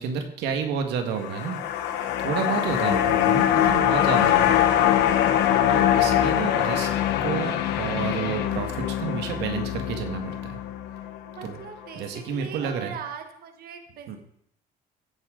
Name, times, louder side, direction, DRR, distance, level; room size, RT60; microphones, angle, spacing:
voice 1, 0.0-1.6 2.2-4.5 5.0-5.1 5.7-6.9 7.2-10.6 11.4-11.6 12.0-13.0 14.1-14.2, right 6 dB, 85° right, 5 dB, 1.9 m, -30 dB
sound 1, 1.1-11.5 11.9-12.0, left 11 dB, 85° left, 1.2 m, -23 dB
voice 2, 11.3-14.2, right 7 dB, 65° right, 5 dB, 1.6 m, -40 dB
15.5 x 8.7 x 4.0 m, 0.70 s
cardioid pair, 110°, 17 cm